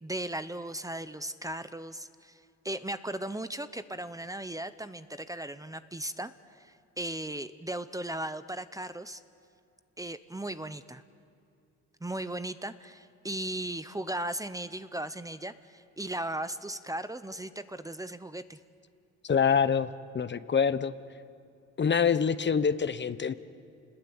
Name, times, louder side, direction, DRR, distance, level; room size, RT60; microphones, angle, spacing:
voice 1, 0.0-9.2 10.0-11.0 12.0-18.6, right 1 dB, 10° right, 12 dB, 0.9 m, -37 dB
voice 2, 19.2-20.9 21.8-23.3, left 6 dB, 35° left, 13 dB, 1.0 m, -26 dB
29.0 x 20.5 x 8.8 m, 2.4 s
cardioid pair, 90°, 30 cm